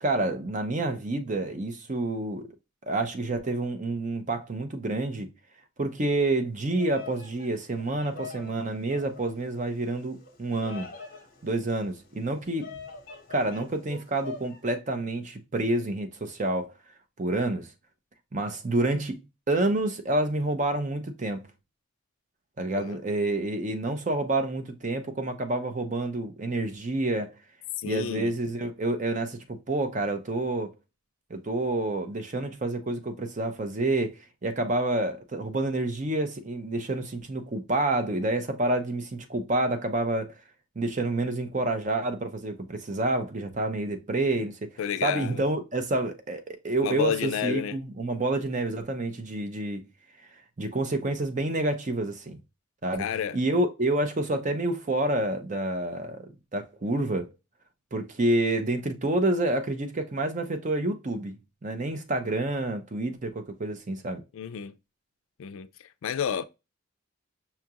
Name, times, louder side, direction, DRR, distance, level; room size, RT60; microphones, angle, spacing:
voice 1, 0.0-2.5 2.9-5.3 5.8-10.9 11.4-12.7 13.3-16.7 17.2-17.7 18.3-19.2 19.5-21.4 22.6-27.3 27.8-30.7 31.3-40.3 40.8-44.7 45.0-49.8 50.6-52.4 52.8-53.0 53.3-57.3 57.9-61.4 61.6-64.2, right 2 dB, 35° right, 0.6 m, -28 dB
Bird vocalization bird call bird song, 6.6-14.6, left 5 dB, 45° left, 0.9 m, -45 dB
voice 2, 27.8-28.3 44.8-45.4 46.8-47.8 53.0-53.4 64.3-64.8 65.4-66.4, left 7 dB, 70° left, 0.3 m, -31 dB
5.7 x 2.4 x 2.8 m
head